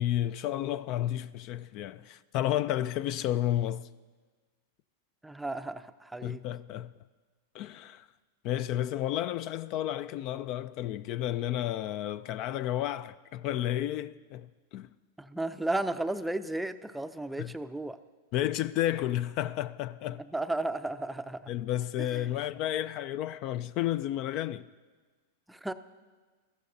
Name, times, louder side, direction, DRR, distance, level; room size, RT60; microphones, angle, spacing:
voice 1, 0.0-3.9 6.2-6.9 7.5-8.1 8.4-14.9 17.4-17.5 18.3-20.3 21.5-24.7, left 12 dB, 45° left, 0.4 m, -32 dB
voice 2, 5.2-6.4 15.2-18.0 20.3-21.5 22.1-22.3 25.5-25.7, right 2 dB, 5° right, 0.5 m, -34 dB
21.5 x 14.5 x 2.7 m
hypercardioid pair, 125°, 0 cm